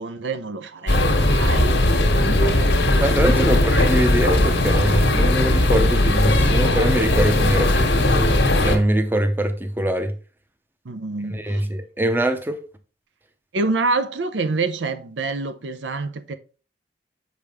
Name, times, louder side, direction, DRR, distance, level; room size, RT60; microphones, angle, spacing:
voice 1, 0.0-2.4 3.4-3.6 10.8-11.6 13.5-16.3, right 3 dB, 85° right, 0.6 m, -27 dB
sound 1, 0.9-8.8, left 1 dB, 80° left, 1.3 m, -18 dB
voice 2, 3.0-8.3 8.7-10.1 11.3-12.6, right 1 dB, 10° right, 0.6 m, -23 dB
6.5 x 5.1 x 3.5 m
head